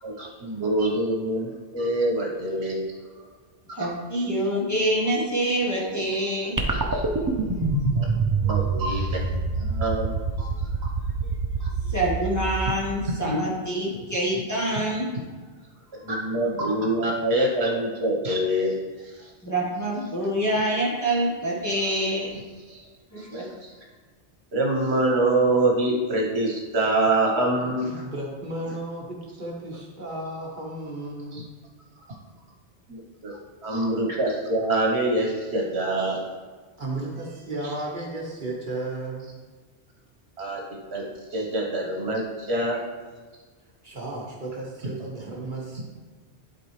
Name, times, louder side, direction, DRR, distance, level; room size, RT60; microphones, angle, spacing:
voice 1, 0.0-2.9 6.9-7.0 7.9-10.5 10.8-10.9 11.6-11.7 14.7-14.8 15.9-18.8 22.7-22.8 23.2-23.5 24.5-28.0 31.3-31.4 32.9-33.3 33.6-36.2 40.4-41.1 41.3-42.8, right 1 dB, 70° right, -2 dB, 1.5 m, -25 dB
voice 2, 3.7-6.6 7.7-8.1 8.5-8.8 11.2-11.3 11.8-15.1 19.4-22.4 23.1-23.5, right 1 dB, 15° left, -5 dB, 1.4 m, -26 dB
sound 1, 6.6-13.1, right 3 dB, 20° right, 0.6 m, -26 dB
voice 3, 27.9-31.4 36.8-39.3 43.8-45.8, right 2 dB, 45° right, -2 dB, 1.3 m, -34 dB
11.5 x 4.1 x 3.3 m, 1.4 s
omnidirectional pair, 1.1 m